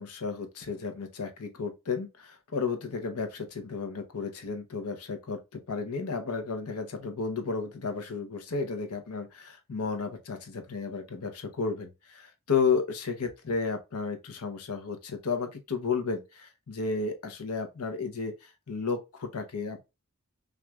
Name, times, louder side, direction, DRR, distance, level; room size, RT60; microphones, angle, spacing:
voice 1, 0.0-19.8, left 5 dB, 85° left, 0.7 m, -33 dB
5.9 x 2.5 x 2.3 m
head